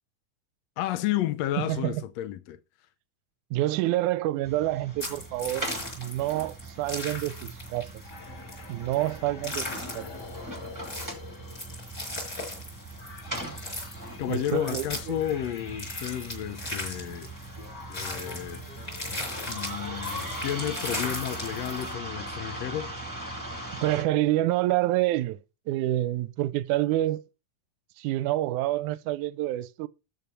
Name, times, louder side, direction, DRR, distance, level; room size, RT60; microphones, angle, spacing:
voice 1, 0.8-2.6 14.2-17.3 17.9-18.6 19.1-19.2 19.5-22.9, left 12 dB, 80° left, 1.5 m, -32 dB
voice 2, 1.6-2.0 3.5-8.0 8.7-10.1 14.3-15.2 23.7-27.2 28.0-29.9, right 15 dB, 75° right, 2.0 m, -28 dB
sound 1, 4.4-24.0, right 1 dB, 5° right, 1.8 m, -40 dB
sound 2, 5.0-21.9, left 1 dB, 25° left, 5.8 m, -38 dB
sound 3, 8.0-19.5, left 5 dB, 50° left, 1.3 m, -47 dB
12.5 x 5.4 x 5.5 m
omnidirectional pair, 3.8 m